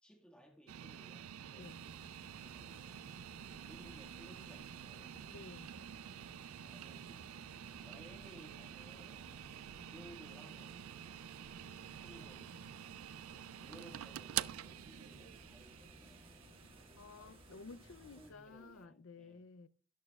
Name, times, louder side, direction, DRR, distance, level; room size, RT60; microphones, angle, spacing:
voice 1, 0.0-1.7 2.4-3.3 3.6-5.2 6.6-7.2 7.7-9.3 9.9-10.9 12.0-12.6 13.6-16.5 18.0-19.4, equal, 5° left, 1.8 m, -59 dB
sound 1, 0.7-18.8, right 10 dB, 85° right, 0.4 m, -48 dB
sound 2, 1.6-18.3, right 1 dB, 25° right, 2.5 m, -59 dB
voice 2, 5.3-5.8 17.0-19.7, left 4 dB, 65° left, 0.5 m, -53 dB
13.0 x 11.0 x 2.4 m
head